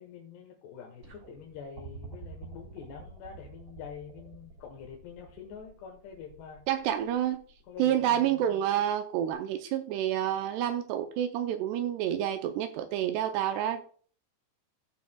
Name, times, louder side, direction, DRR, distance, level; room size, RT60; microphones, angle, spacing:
voice 1, 0.0-6.6 7.7-8.6, left 7 dB, 75° left, 3.1 m, -46 dB
sound 1, 1.0-8.2 9.3-9.4, right 5 dB, 55° right, 2.0 m, -49 dB
voice 2, 6.7-7.4 7.8-13.9, right 11 dB, 80° right, 2.5 m, -29 dB
16.5 x 5.8 x 2.3 m
omnidirectional pair, 5.1 m